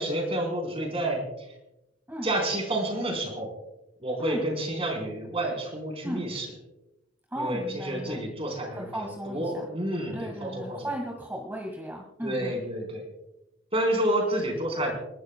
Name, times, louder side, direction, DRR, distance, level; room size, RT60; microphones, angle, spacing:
voice 1, 0.0-1.5 2.2-3.5 4.0-6.5 7.4-10.9 12.2-13.0 13.7-14.9, right 1 dB, 30° right, 2 dB, 4.1 m, -29 dB
voice 2, 7.3-8.3 8.7-9.7 10.1-12.6, right 1 dB, 10° right, 0 dB, 1.8 m, -36 dB
29.5 x 12.0 x 2.3 m, 0.92 s
head